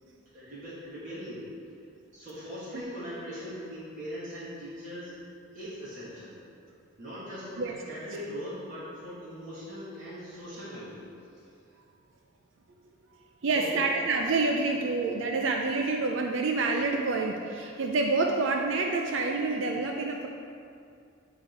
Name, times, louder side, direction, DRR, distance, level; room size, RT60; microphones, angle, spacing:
voice 1, 0.3-1.4 2.1-5.1 5.5-6.3 7.0-11.1 13.4-13.8, equal, 40° right, -11 dB, 1.8 m, -40 dB
voice 2, 13.4-20.3, right 3 dB, 70° right, 2 dB, 0.5 m, -27 dB
10.5 x 3.6 x 4.4 m, 2.4 s
head